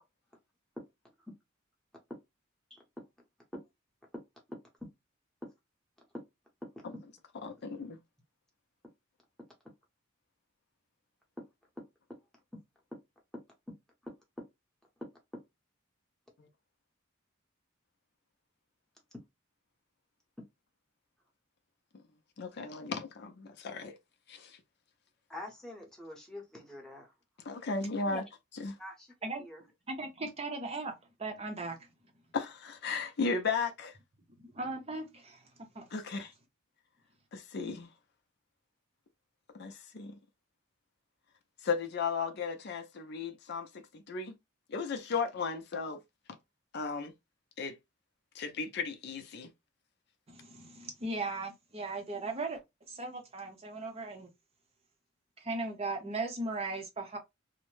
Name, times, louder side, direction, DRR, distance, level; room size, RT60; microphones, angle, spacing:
voice 1, 6.8-8.0 22.4-24.0 24.3-24.6 27.5-28.3 28.5-28.8 32.3-34.0 35.9-36.3 37.3-37.9 39.5-40.1 41.6-43.7 43.9-44.3 44.7-46.0 46.7-47.1 47.6-47.7 48.3-49.5, left 4 dB, 55° left, 0.5 m, -35 dB
voice 2, 25.3-27.1 28.8-29.1 29.4-29.6, left 1 dB, 5° left, 0.8 m, -46 dB
voice 3, 29.9-30.9 31.2-31.9 34.4-35.4 35.7-35.9 50.3-52.6 52.9-54.3 55.4-57.2, right 3 dB, 30° right, 0.6 m, -37 dB
2.7 x 2.1 x 3.1 m
head